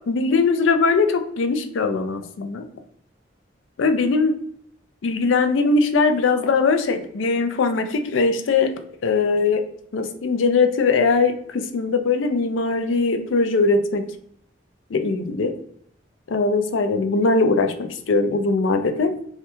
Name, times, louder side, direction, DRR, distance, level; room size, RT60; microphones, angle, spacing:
voice 1, 0.1-2.6 3.8-4.3 5.0-8.7 9.0-9.6 9.9-14.0 14.9-15.5 16.3-19.1, left 4 dB, 85° left, 8 dB, 0.4 m, -20 dB
3.2 x 2.3 x 2.9 m, 0.67 s
head